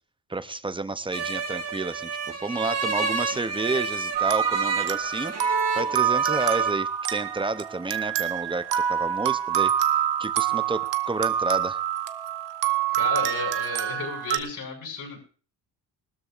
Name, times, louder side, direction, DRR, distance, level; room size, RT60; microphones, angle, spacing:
voice 1, 0.3-2.1 2.4-9.7 10.2-11.8, right 3 dB, 10° right, 13 dB, 0.6 m, -30 dB
sound 1, 1.1-6.7, right 4 dB, 35° right, 1.5 m, -30 dB
sound 2, 4.1-14.4, right 9 dB, 85° right, 1.0 m, -26 dB
voice 2, 12.9-15.2, left 4 dB, 50° left, 0 dB, 6.0 m, -33 dB
19.5 x 13.0 x 2.5 m, 0.39 s
cardioid pair, 115°, 42 cm